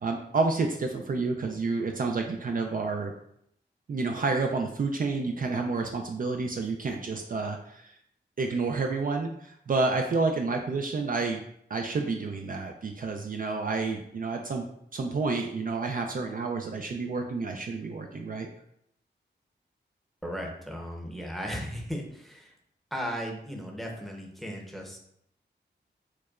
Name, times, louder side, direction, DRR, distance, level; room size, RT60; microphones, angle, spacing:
voice 1, 0.0-3.1 3.9-7.9 8.4-11.4 11.7-14.6 14.9-18.5, right 3 dB, 50° right, 3 dB, 0.4 m, -29 dB
voice 2, 20.2-22.5 22.9-25.0, equal, ahead, 0 dB, 0.7 m, -36 dB
4.7 x 2.2 x 2.4 m, 0.72 s
wide cardioid pair, 70°, 19 cm